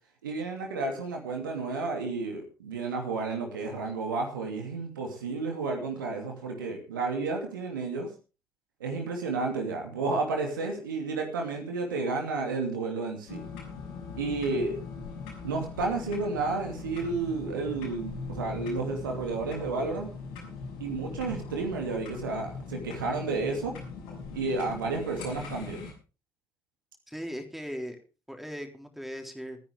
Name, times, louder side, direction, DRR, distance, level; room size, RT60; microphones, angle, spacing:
voice 1, 0.2-8.1 8.8-13.4 14.2-14.8 15.4-20.1 20.8-23.7 24.3-25.9, right 3 dB, 80° right, 3 dB, 2.7 m, -31 dB
sound 1, 13.3-25.9, left 4 dB, 70° left, 6.3 m, -40 dB
voice 2, 27.1-28.0 28.3-29.6, equal, ahead, 4 dB, 3.6 m, -38 dB
25.0 x 9.9 x 3.5 m, 0.33 s
figure-of-eight pair, 45°, 11 cm